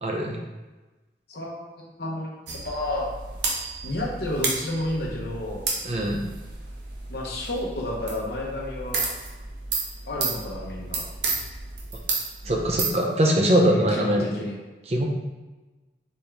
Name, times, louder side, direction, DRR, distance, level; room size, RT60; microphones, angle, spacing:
voice 1, 0.0-0.4 5.8-6.2 12.4-14.3 14.9-15.0, equal, 35° right, 0 dB, 0.6 m, -22 dB
voice 2, 1.3-3.1 3.8-5.6 7.1-9.0 10.1-11.0 13.7-14.6, left 1 dB, 60° left, -2 dB, 0.9 m, -31 dB
sound 1, 2.5-12.9, right 4 dB, 75° right, 0.8 m, -32 dB
4.4 x 3.5 x 3.4 m, 1.2 s
head